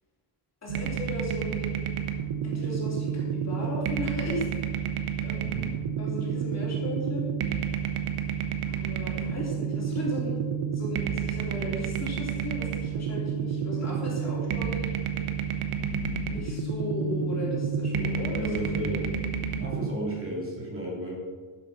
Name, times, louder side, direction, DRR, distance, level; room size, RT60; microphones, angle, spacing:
voice 1, 0.6-1.7 2.4-4.5 5.2-5.5 6.0-7.3 8.7-10.4 10.7-15.0 16.3-18.5, left 1 dB, 30° left, -4 dB, 3.3 m, -36 dB
sound 1, 0.7-19.9, right 7 dB, 85° right, 1.2 m, -30 dB
voice 2, 5.1-5.7 14.0-14.1 18.3-19.2 19.5-21.2, right 1 dB, 25° right, -3 dB, 2.6 m, -34 dB
12.5 x 7.4 x 5.7 m, 1.5 s
wide cardioid pair, 175°, 49 cm